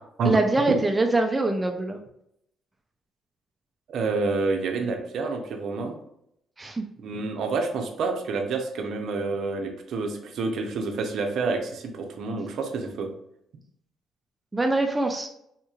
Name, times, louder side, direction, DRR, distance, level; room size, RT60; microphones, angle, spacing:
voice 1, 0.3-2.0 6.6-6.8 14.5-15.3, right 2 dB, 15° right, 4 dB, 0.3 m, -23 dB
voice 2, 3.9-6.0 7.0-13.1, right 4 dB, 60° right, 4 dB, 0.6 m, -28 dB
3.6 x 2.9 x 2.4 m, 0.76 s
cardioid pair, 125°, 0 cm